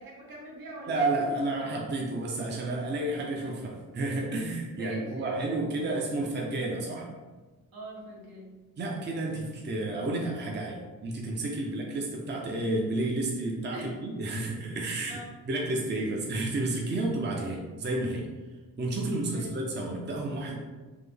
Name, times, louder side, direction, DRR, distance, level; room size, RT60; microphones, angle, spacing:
voice 1, 0.0-1.3 4.7-5.3 7.7-8.5 11.6-11.7 13.7-13.9 15.1-15.3 16.9-17.0 19.2-19.5, right 1 dB, 80° right, -3 dB, 1.0 m, -43 dB
voice 2, 0.9-7.1 8.8-15.2 15.5-18.3 18.8-20.6, right 2 dB, 30° right, -1 dB, 0.5 m, -31 dB
3.6 x 2.0 x 3.4 m, 1.3 s
wide cardioid pair, 105°, 35 cm